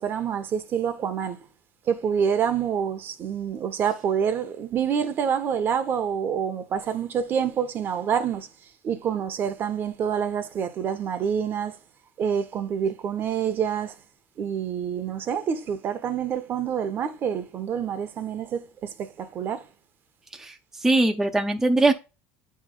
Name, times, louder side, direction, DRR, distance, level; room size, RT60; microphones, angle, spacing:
voice 1, 0.0-1.4 1.9-8.5 8.8-11.7 12.2-13.9 14.4-19.6, right 7 dB, 45° right, 0.9 m, -27 dB
voice 2, 20.3-21.9, right 2 dB, 10° right, 0.5 m, -22 dB
8.7 x 3.2 x 3.8 m
cardioid pair, 125°, 5 cm